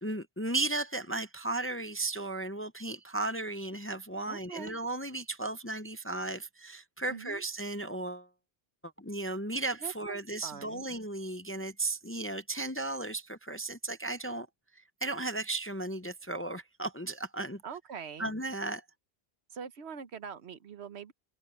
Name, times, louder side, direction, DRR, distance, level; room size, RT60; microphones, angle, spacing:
voice 1, 0.0-8.3 8.8-14.5 14.7-17.6 18.2-18.8, right 2 dB, 15° left, 0.5 m, -35 dB
voice 2, 4.2-4.7 7.1-7.4 9.8-10.8 17.6-18.3 19.5-21.1, right 7 dB, 85° right, 1.2 m, -43 dB
omnidirectional pair, 1.1 m